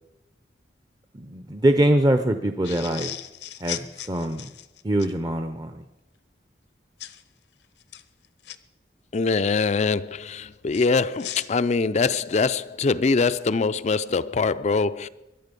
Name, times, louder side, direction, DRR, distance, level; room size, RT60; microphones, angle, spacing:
voice 1, 1.1-3.1 3.6-4.5 4.8-5.8, right 1 dB, 20° right, 0.7 m, -23 dB
sound 1, 2.6-5.1 7.0-7.2 7.8-8.6 10.7-12.6, left 12 dB, 70° left, 0.8 m, -37 dB
voice 2, 9.1-15.1, left 4 dB, 40° left, 0.4 m, -23 dB
21.5 x 11.5 x 5.2 m
head